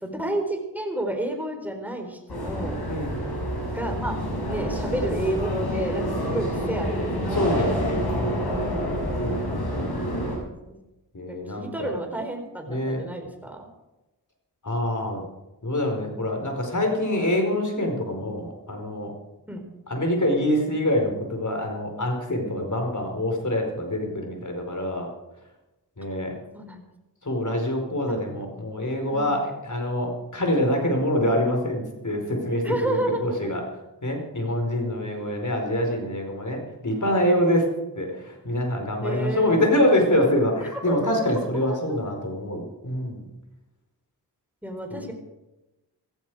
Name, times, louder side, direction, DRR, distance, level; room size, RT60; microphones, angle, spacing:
voice 1, 0.0-2.8 3.7-4.2 4.5-7.1 7.6-7.8 10.7-10.8 11.3-13.7 19.5-19.6 26.5-26.8 28.1-28.2 29.1-29.4 32.6-33.5 39.0-39.8 40.6-41.8 44.6-45.1, right 1 dB, 5° right, 3 dB, 4.1 m, -31 dB
sound 1, 2.3-10.4, equal, 65° left, 6.8 m, -28 dB
voice 2, 2.9-3.2 6.1-6.4 7.3-8.6 9.2-10.2 11.1-12.0 12.7-13.0 14.6-15.2 15.6-19.1 19.9-25.1 26.0-26.4 27.2-33.6 34.0-37.7 37.9-43.3 44.9-45.1, left 1 dB, 45° left, 3 dB, 4.8 m, -25 dB
16.0 x 15.0 x 4.9 m, 1.0 s
cardioid pair, 45°, 41 cm